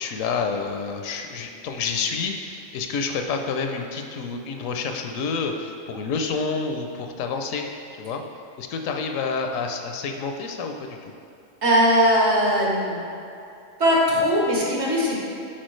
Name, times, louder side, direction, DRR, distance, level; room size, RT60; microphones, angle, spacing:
voice 1, 0.0-7.6 7.9-8.2 8.6-11.1, left 5 dB, 75° left, 4 dB, 0.9 m, -28 dB
voice 2, 11.6-12.9 13.8-15.2, equal, 55° right, -4 dB, 1.4 m, -19 dB
8.7 x 4.5 x 3.1 m, 2.7 s
omnidirectional pair, 1.4 m